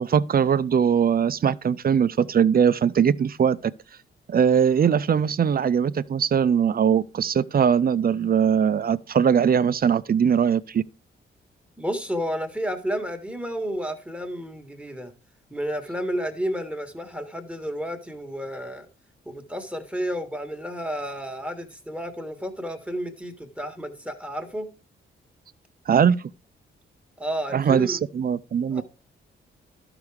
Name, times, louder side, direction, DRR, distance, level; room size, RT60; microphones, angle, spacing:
voice 1, 0.0-3.7 4.3-10.8 25.9-26.2 27.5-28.8, right 7 dB, 45° right, 0.5 m, -21 dB
voice 2, 11.8-15.1 15.5-18.9 19.2-24.7 27.2-28.0 28.7-28.8, equal, 5° right, 1.5 m, -31 dB
12.0 x 6.0 x 4.8 m
cardioid pair, 85°, 21 cm